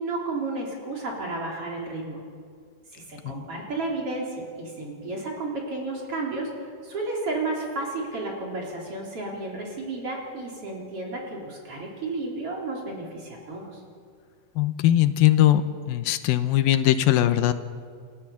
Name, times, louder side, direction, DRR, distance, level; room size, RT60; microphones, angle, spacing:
voice 1, 0.0-2.2 2.9-13.8, right 2 dB, 40° right, -2 dB, 4.3 m, -32 dB
voice 2, 14.6-15.6 15.9-17.5, left 13 dB, 80° left, 10 dB, 2.6 m, -20 dB
29.0 x 15.0 x 7.2 m, 2.2 s
omnidirectional pair, 4.2 m